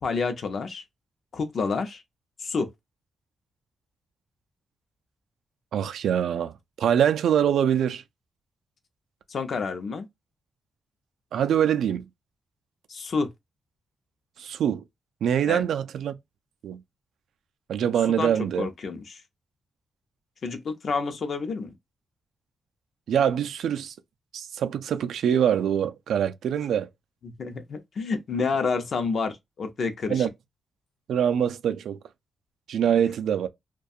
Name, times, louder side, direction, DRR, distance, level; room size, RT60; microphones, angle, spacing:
voice 1, 0.0-0.8 1.3-2.0 2.4-2.7 9.3-10.1 12.9-13.3 15.5-15.6 18.2-18.3 18.6-19.2 20.4-21.7 27.2-30.3, left 4 dB, 50° left, 0.5 m, -29 dB
voice 2, 5.7-6.5 6.8-8.0 11.3-12.1 14.4-14.8 15.2-16.1 16.6-16.8 17.7-18.7 23.1-23.9 24.3-26.9 30.1-30.3 31.1-32.0 32.7-33.5, right 9 dB, 90° right, 0.3 m, -24 dB
2.4 x 2.2 x 2.6 m
wide cardioid pair, 135°, 0 cm